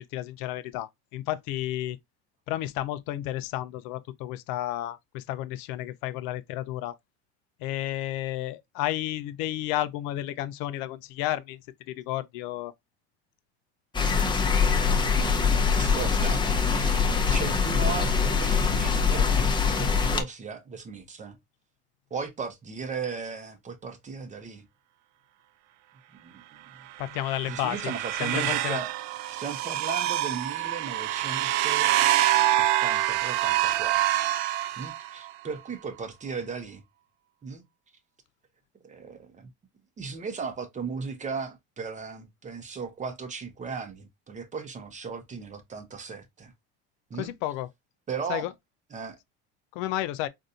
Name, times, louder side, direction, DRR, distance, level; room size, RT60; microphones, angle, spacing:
voice 1, 0.0-2.0 2.5-6.9 7.6-11.6 11.9-12.7 27.0-27.9 28.2-28.8 47.2-47.7 48.3-48.5 49.7-50.3, left 14 dB, 75° left, 0.5 m, -32 dB
sound 1, 13.9-20.2, left 5 dB, 15° left, 0.7 m, -23 dB
voice 2, 15.7-16.4 16.7-19.3 19.7-21.4 22.1-24.6 26.2-26.4 27.4-28.9 29.3-31.9 32.6-34.0 34.8-36.8 37.4-37.6 38.8-39.5 40.0-46.5 47.1-47.3 48.1-48.5 48.9-49.2, right 5 dB, 25° right, 0.7 m, -36 dB
sound 2, 27.0-35.3, right 14 dB, 65° right, 0.4 m, -26 dB
4.0 x 2.6 x 2.4 m
supercardioid pair, 115°, 30 cm